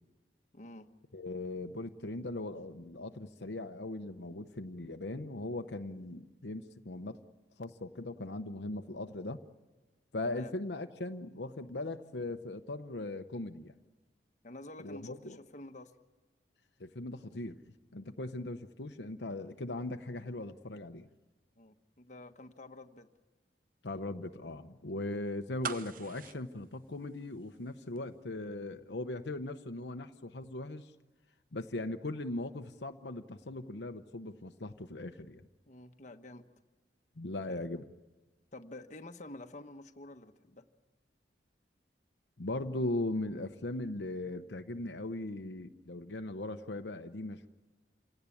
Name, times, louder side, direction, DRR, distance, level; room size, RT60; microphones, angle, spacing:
voice 1, 0.5-0.9 10.3-10.5 14.4-15.9 21.6-23.1 25.0-25.2 35.7-36.5 37.5-37.7 38.5-40.7, left 2 dB, 45° left, 6 dB, 1.2 m, -49 dB
voice 2, 1.1-7.2 7.6-9.4 10.1-13.7 14.8-15.4 16.8-17.6 17.9-21.1 23.8-30.9 31.5-35.5 37.2-37.8 42.4-47.5, left 2 dB, 75° left, 6 dB, 0.9 m, -39 dB
sound 1, 25.6-27.7 28.0-28.1, right 6 dB, 50° right, 0.8 m, -42 dB
27.5 x 17.5 x 9.9 m, 1.3 s
head